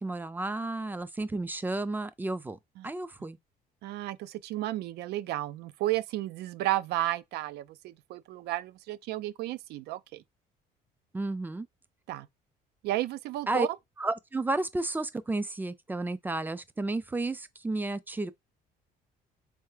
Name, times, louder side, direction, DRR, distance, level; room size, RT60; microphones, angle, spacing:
voice 1, 0.0-3.4 11.1-11.7 13.5-13.7 14.0-18.3, right 2 dB, 10° right, 0.4 m, -32 dB
voice 2, 3.8-10.2 12.1-12.3 12.8-13.7, right 15 dB, 75° right, 0.4 m, -33 dB
3.6 x 3.3 x 3.2 m
cardioid pair, 110°, 17 cm